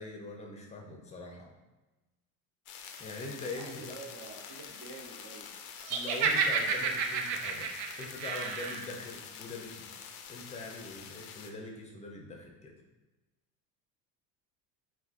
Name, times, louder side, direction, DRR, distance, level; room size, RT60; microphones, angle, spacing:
voice 1, 0.0-1.5 3.0-3.9 5.9-7.7 8.0-12.8, left 2 dB, 15° left, 1 dB, 0.5 m, -43 dB
sound 1, 2.7-11.5, left 7 dB, 80° left, 0.5 m, -47 dB
voice 2, 3.5-5.5, right 3 dB, 60° right, -1 dB, 0.9 m, -47 dB
Laughter, 5.9-8.9, right 5 dB, 85° right, 0.5 m, -30 dB
3.7 x 2.5 x 2.5 m, 1.1 s
supercardioid pair, 105°, 40 cm